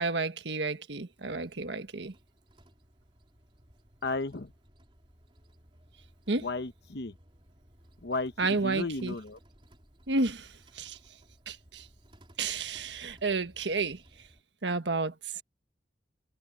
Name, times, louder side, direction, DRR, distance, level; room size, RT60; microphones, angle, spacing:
voice 1, 0.0-2.1 6.3-6.5 8.4-9.1 10.1-11.0 11.5-11.9 12.4-14.3 14.6-15.4, right 3 dB, 85° right, 1.4 m, -31 dB
sound 1, 1.1-14.4, equal, 30° right, 4.1 m, -60 dB
voice 2, 4.0-4.5 6.4-7.1 8.0-9.4, left 3 dB, 65° left, 0.9 m, -34 dB
head